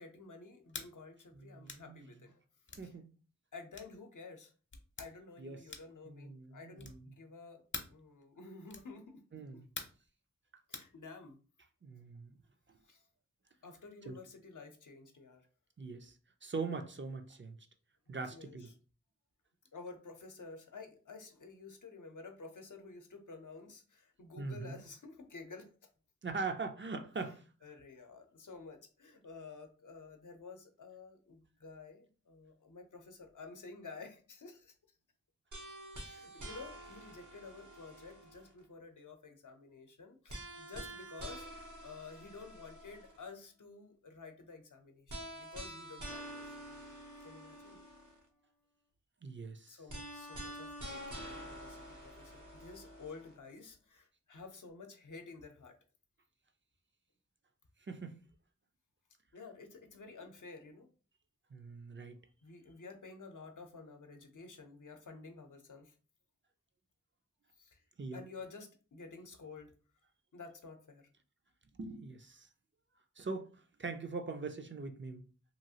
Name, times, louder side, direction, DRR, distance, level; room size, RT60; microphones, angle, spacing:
voice 1, 0.0-2.4 2.8-2.9 3.5-4.5 5.0-9.2 10.7-11.4 12.9-13.0 13.6-15.4 18.1-18.7 19.7-25.7 27.6-34.8 36.0-46.6 47.2-47.8 49.7-55.8 59.3-60.9 62.4-65.9 67.6-67.8 68.1-69.7 70.3-71.1, left 4 dB, 90° left, 0.6 m, -51 dB
sound 1, 0.7-0.9 1.7-1.9 2.7-2.9 3.7-4.0 4.7-5.1 5.7-6.0 6.8-7.1 7.7-8.0 8.7-8.9 9.8-10.1 10.7-10.9, left 3 dB, 40° left, 0.5 m, -45 dB
voice 2, 1.3-2.0 2.8-3.1 5.4-5.7 6.1-7.1 9.3-9.7 11.8-12.4 14.1-14.2 15.8-16.2 16.4-17.6 18.1-18.7 24.4-24.8 26.2-27.5 49.2-49.8 57.9-58.2 61.5-62.2 68.0-68.2 71.8-72.5 73.2-75.3, right 4 dB, 40° right, 0.4 m, -42 dB
sound 2, 35.5-38.6 40.3-43.3 45.1-48.3 49.9-53.3, right 1 dB, 80° right, 0.8 m, -47 dB
2.9 x 2.4 x 2.7 m
wide cardioid pair, 40°, 30 cm